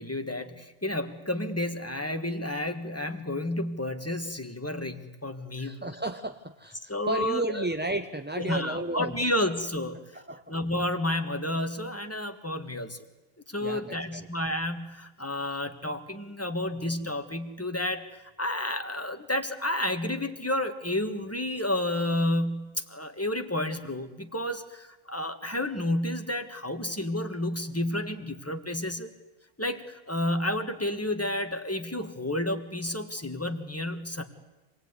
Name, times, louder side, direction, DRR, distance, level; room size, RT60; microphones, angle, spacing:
voice 1, 0.0-6.0 6.9-7.7 8.4-10.2 10.5-13.0 13.5-18.0 18.4-29.1 29.6-34.2, left 1 dB, 10° left, 6 dB, 1.5 m, -31 dB
voice 2, 5.6-9.2 10.1-10.5 13.6-14.3, right 2 dB, 10° right, 6 dB, 0.6 m, -33 dB
26.5 x 19.0 x 9.6 m, 1.1 s
omnidirectional pair, 1.5 m